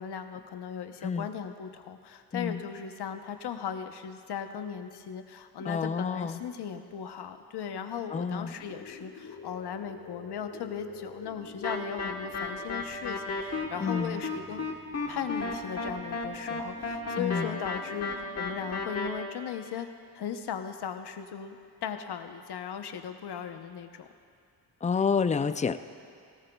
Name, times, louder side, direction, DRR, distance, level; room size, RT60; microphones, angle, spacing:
voice 1, 0.0-14.6 15.1-19.9 20.1-24.1, left 8 dB, 80° left, 7 dB, 0.9 m, -37 dB
voice 2, 5.7-6.4 8.1-8.6 13.8-14.2 17.2-17.6 24.8-25.8, left 5 dB, 20° left, 11 dB, 0.3 m, -29 dB
sound 1, 8.4-18.9, left 4 dB, 65° left, 2.7 m, -49 dB
sound 2, 11.6-19.1, left 3 dB, 40° left, 1.2 m, -33 dB
18.0 x 17.5 x 2.3 m, 2.4 s
wide cardioid pair, 125°, 40 cm